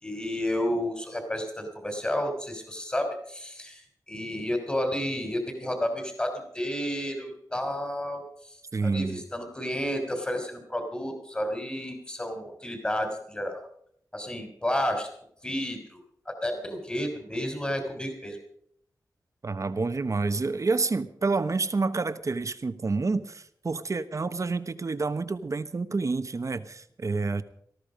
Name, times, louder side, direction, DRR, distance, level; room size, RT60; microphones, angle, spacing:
voice 1, 0.0-3.8 4.1-8.6 8.8-13.6 14.1-15.1 15.4-16.0 16.2-18.4, left 1 dB, 20° left, 4 dB, 3.2 m, -31 dB
voice 2, 8.7-9.2 19.4-27.4, right 3 dB, 50° right, 11 dB, 1.1 m, -28 dB
19.0 x 14.0 x 5.1 m, 0.68 s
wide cardioid pair, 95°, 7 cm